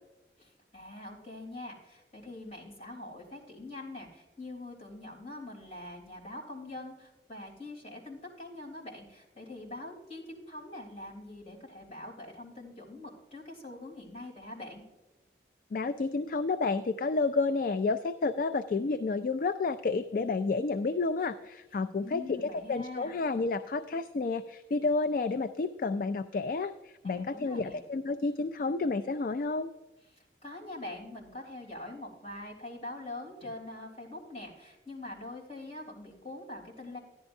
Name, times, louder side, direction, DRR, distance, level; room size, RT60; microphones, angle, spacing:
voice 1, 0.4-14.8 22.0-23.1 27.0-27.8 30.1-37.0, left 2 dB, 35° left, -3 dB, 3.3 m, -44 dB
voice 2, 15.7-29.7, left 3 dB, 50° left, 11 dB, 0.3 m, -30 dB
14.0 x 11.0 x 2.6 m, 1.1 s
head